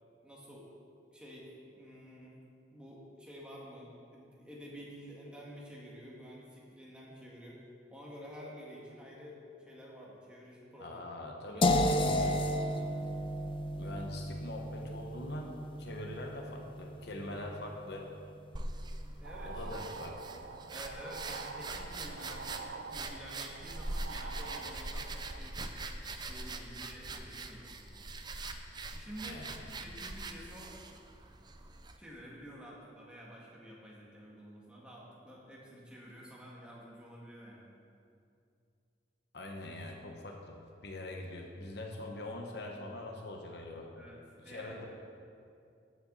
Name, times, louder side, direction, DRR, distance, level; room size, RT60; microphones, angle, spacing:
voice 1, 0.2-0.7 1.1-1.5 1.7-2.3 2.7-7.6 7.9-9.4 9.7-11.1 11.4-12.7 17.2-17.5 19.2-19.9 20.7-25.7 26.3-27.9 28.9-29.4 29.8-30.8 32.0-37.7 44.0-44.8, equal, 5° right, -5 dB, 2.0 m, -50 dB
voice 2, 10.8-12.3 13.8-18.1 19.4-20.3 29.2-29.6 39.3-43.9 44.4-44.9, left 1 dB, 65° left, 1 dB, 1.1 m, -43 dB
sound 1, 11.6-17.5, left 1 dB, 30° left, 0.5 m, -33 dB
sound 2, 18.5-32.0, right 2 dB, 25° right, 0.6 m, -42 dB
sound 3, 19.2-25.4, right 4 dB, 75° right, 0.5 m, -46 dB
14.0 x 8.0 x 4.1 m, 2.5 s
head